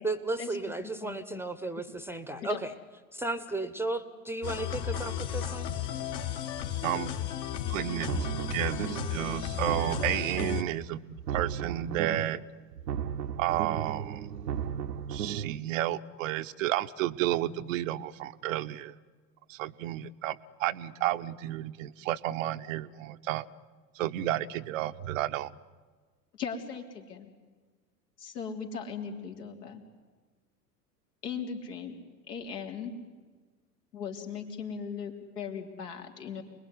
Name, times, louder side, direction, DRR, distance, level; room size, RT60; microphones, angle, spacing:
voice 1, 0.0-2.7 3.1-5.7, right 2 dB, 5° right, 13 dB, 1.1 m, -34 dB
voice 2, 1.0-1.4 2.4-2.6 26.4-27.3 28.2-29.8 31.2-32.0 32.3-32.9 33.9-36.4, left 6 dB, 70° left, 2 dB, 3.9 m, -38 dB
sound 1, 4.4-10.6, left 9 dB, 50° left, 2.5 m, -34 dB
voice 3, 6.8-7.1 7.7-12.4 13.4-14.3 15.1-18.9 19.5-23.5 24.0-25.5, right 13 dB, 50° right, 11 dB, 0.9 m, -32 dB
sound 2, 8.0-9.2 9.5-10.8 11.1-12.4 12.7-15.5, right 8 dB, 75° right, 1.1 m, -35 dB
28.5 x 21.0 x 9.9 m, 1.4 s
figure-of-eight pair, 90°, 49 cm